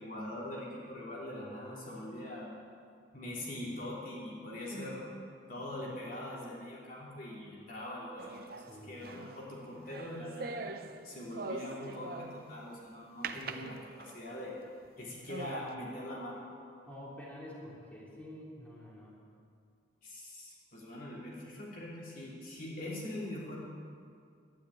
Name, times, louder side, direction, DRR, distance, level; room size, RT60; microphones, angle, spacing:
voice 1, 0.0-2.5 3.1-5.1 5.5-10.7 11.0-14.6 15.0-16.4 20.0-23.6, left 1 dB, 45° left, -5 dB, 3.1 m, -42 dB
sound 1, 8.2-12.6 13.2-14.3 14.8-14.9 15.3-15.7, right 3 dB, 50° right, 0.7 m, -43 dB
voice 2, 8.7-9.0 13.5-13.7 16.9-19.2, left 1 dB, 10° left, -6 dB, 3.5 m, -48 dB
12.0 x 10.5 x 9.8 m, 2.3 s
head